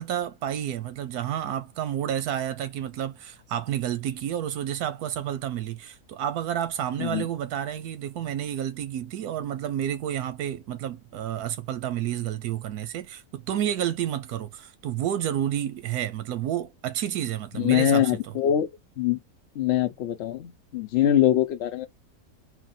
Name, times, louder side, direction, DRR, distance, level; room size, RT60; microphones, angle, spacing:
voice 1, 0.0-18.3, right 10 dB, 85° right, 1.2 m, -30 dB
voice 2, 17.5-19.2 19.6-21.9, left 11 dB, 65° left, 0.7 m, -23 dB
3.9 x 2.2 x 4.1 m
omnidirectional pair, 1.6 m